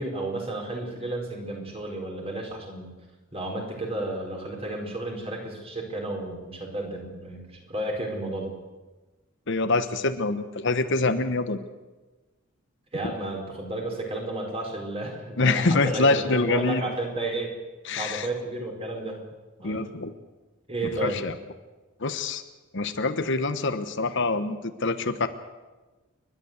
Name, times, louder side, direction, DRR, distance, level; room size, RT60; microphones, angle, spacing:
voice 1, 0.0-2.9 3.3-8.5 12.9-17.5 17.9-19.2 19.6-19.9 20.7-21.2, right 2 dB, 30° right, 1 dB, 4.4 m, -32 dB
voice 2, 9.5-11.6 15.4-16.8 17.9-18.3 19.6-20.1 20.8-21.3 22.0-22.4 22.7-25.3, left 3 dB, 60° left, 9 dB, 1.1 m, -25 dB
29.5 x 11.5 x 8.1 m, 1.2 s
head